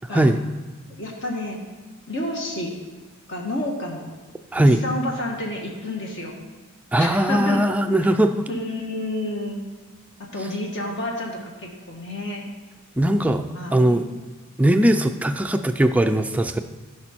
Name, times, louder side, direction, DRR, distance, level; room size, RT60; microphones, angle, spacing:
voice 1, 0.0-0.4 4.5-4.8 6.9-8.5 13.0-13.5 13.7-14.1 14.6-16.6, right 1 dB, 5° right, 7 dB, 0.3 m, -19 dB
voice 2, 1.0-1.6 2.1-2.7 3.3-4.1 4.7-6.3 7.0-7.6 8.5-9.6 10.2-12.4 13.0-14.2, left 1 dB, 50° left, -1 dB, 1.5 m, -30 dB
15.0 x 5.3 x 4.4 m, 1.3 s
head